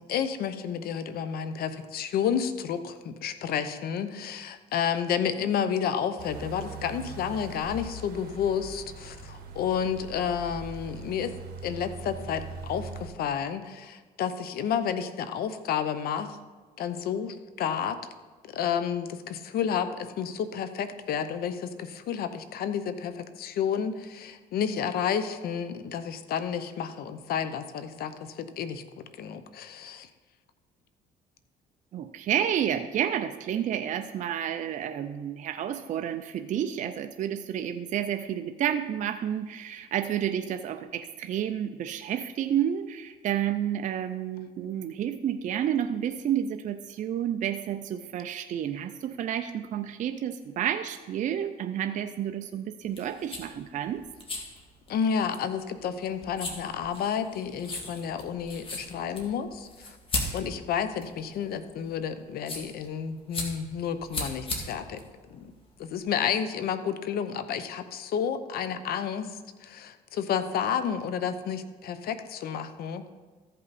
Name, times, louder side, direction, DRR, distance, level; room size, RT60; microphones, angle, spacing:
voice 1, 0.0-11.3 11.6-16.4 16.8-18.0 18.4-28.8 29.2-30.1 54.9-60.0 60.3-65.0 65.3-65.5 65.8-73.0, left 8 dB, 65° left, 11 dB, 0.7 m, -31 dB
sound 1, 6.2-13.1, right 5 dB, 65° right, 1.6 m, -41 dB
voice 2, 31.9-54.0, right 10 dB, 50° right, 8 dB, 0.5 m, -30 dB
sound 2, 52.8-66.0, left 2 dB, 30° left, 1.8 m, -38 dB
14.0 x 5.5 x 4.1 m, 1.3 s
cardioid pair, 110°, 17 cm